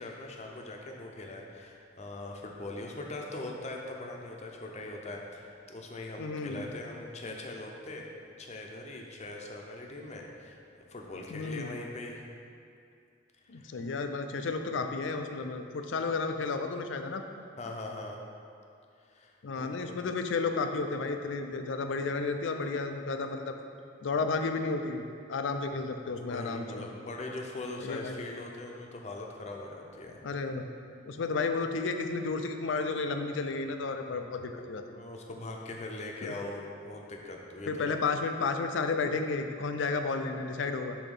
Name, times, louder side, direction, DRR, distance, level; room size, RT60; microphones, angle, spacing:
voice 1, 0.0-8.0 8.4-10.6 10.9-12.2 13.5-13.7 17.6-18.2 19.1-20.0 26.1-30.2 34.5-34.6 34.9-37.9, left 2 dB, 35° left, 1 dB, 0.6 m, -41 dB
voice 2, 6.2-6.7 11.3-11.7 13.5-17.2 19.4-23.5 24.0-26.9 27.8-28.2 30.2-30.7 31.1-34.8 36.2-36.3 37.7-41.0, left 4 dB, 85° left, 6 dB, 0.4 m, -32 dB
7.0 x 2.8 x 5.3 m, 2.4 s
head